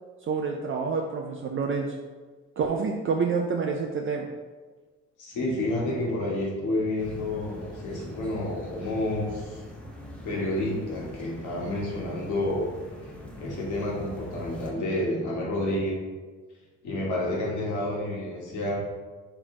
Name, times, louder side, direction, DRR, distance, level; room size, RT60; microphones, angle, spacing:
voice 1, 0.2-1.9 2.6-4.3, right 5 dB, 45° right, 2 dB, 0.4 m, -28 dB
voice 2, 5.2-9.6 10.2-12.6 13.4-15.9 16.8-18.8, left 1 dB, 80° left, -4 dB, 1.4 m, -29 dB
sound 1, 7.0-14.7, left 1 dB, 5° left, 0.7 m, -44 dB
3.4 x 3.3 x 3.8 m, 1.4 s
cardioid pair, 90°, 30 cm